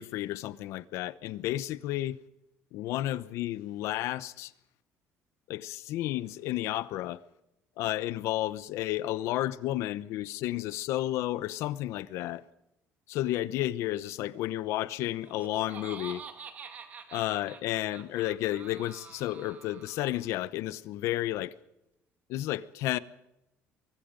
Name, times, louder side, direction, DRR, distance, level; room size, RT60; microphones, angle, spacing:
voice 1, 0.0-2.2 2.7-4.5 5.5-7.2 7.8-12.4 13.1-16.2 17.1-21.5 22.3-23.0, left 15 dB, 70° left, 1.0 m, -32 dB
Laughter, 15.0-20.3, right 6 dB, 30° right, 2.1 m, -47 dB
24.0 x 23.5 x 5.3 m
cardioid pair, 180°, 5 cm